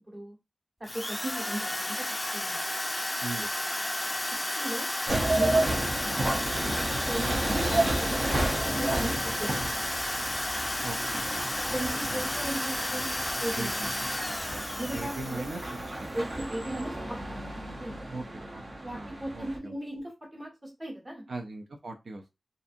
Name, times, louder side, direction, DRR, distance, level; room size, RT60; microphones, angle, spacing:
Drill, 0.8-16.0, left 1 dB, 15° left, 0.3 m, -32 dB
voice 1, 0.8-2.6 3.6-3.7 4.6-4.9 5.3-6.8 7.1-9.6 11.7-13.1 13.4-13.8 14.8-15.4 16.1-17.2 17.8-18.1 18.8-21.2, right 1 dB, 30° right, -2 dB, 1.3 m, -37 dB
sound 1, 5.1-19.6, right 1 dB, 55° right, 0.7 m, -32 dB
voice 2, 10.8-11.3 12.0-12.2 13.5-14.0 14.9-15.6 16.0-16.1 18.1-18.2 18.5-18.6 18.9-19.7 21.3-22.3, right 3 dB, 85° right, 3 dB, 0.4 m, -39 dB
2.5 x 2.5 x 2.5 m, 0.23 s
wide cardioid pair, 85°, 0 cm